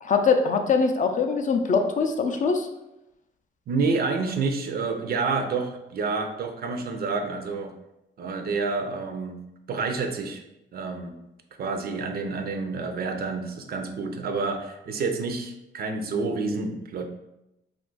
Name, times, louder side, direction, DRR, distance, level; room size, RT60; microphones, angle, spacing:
voice 1, 0.0-2.7, left 5 dB, 40° left, 5 dB, 0.4 m, -22 dB
voice 2, 3.7-7.7 8.2-9.4 9.7-10.4 10.7-11.1 11.6-17.1, right 4 dB, 50° right, 6 dB, 0.4 m, -28 dB
2.4 x 2.4 x 3.8 m, 0.88 s
cardioid pair, 90°, 20 cm